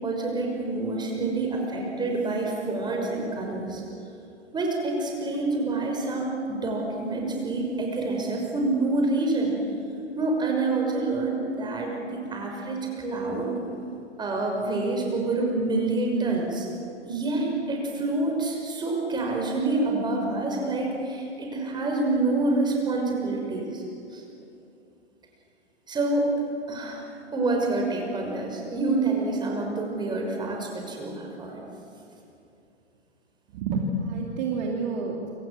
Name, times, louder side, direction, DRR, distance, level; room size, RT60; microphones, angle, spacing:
voice 1, 0.0-3.8 4.5-9.5 10.2-13.5 14.2-16.7 17.0-23.8 24.1-24.2 25.9-26.3 26.7-27.0 27.3-31.6, right 2 dB, 10° right, 1 dB, 5.8 m, -27 dB
voice 2, 33.5-35.3, right 3 dB, 40° right, 0 dB, 3.0 m, -29 dB
29.0 x 26.0 x 7.8 m, 2.7 s
figure-of-eight pair, 110°, 34 cm